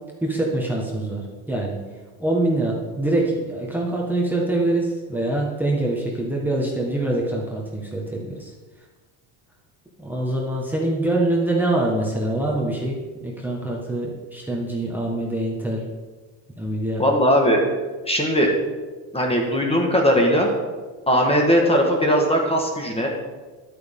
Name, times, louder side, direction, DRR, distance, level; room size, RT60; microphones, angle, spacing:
voice 1, 0.2-1.8 2.2-8.5 10.0-15.9 16.6-17.0, right 1 dB, 5° right, -2 dB, 1.5 m, -24 dB
voice 2, 17.0-17.7 18.0-18.5 19.1-20.5 21.1-23.1, equal, 10° left, 1 dB, 1.6 m, -19 dB
11.0 x 9.3 x 3.7 m, 1.3 s
cardioid pair, 125°, 46 cm